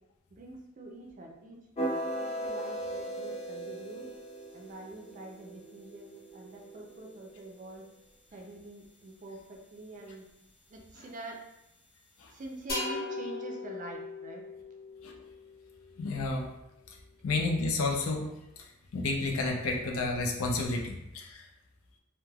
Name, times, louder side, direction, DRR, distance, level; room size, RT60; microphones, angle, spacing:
voice 1, 0.3-4.1 4.5-7.8 8.3-10.3 10.7-11.4 12.3-14.4, right 2 dB, 40° right, 1 dB, 0.4 m, -46 dB
sound 1, 1.8-7.8, right 1 dB, 30° left, 0.4 m, -38 dB
sound 2, 12.7-16.3, left 2 dB, 50° left, 0.9 m, -39 dB
voice 2, 16.0-16.5 16.9-17.0 17.2-18.3 18.9-21.5, left 3 dB, 90° left, 1 dB, 0.5 m, -31 dB
3.2 x 2.1 x 2.2 m, 0.88 s
head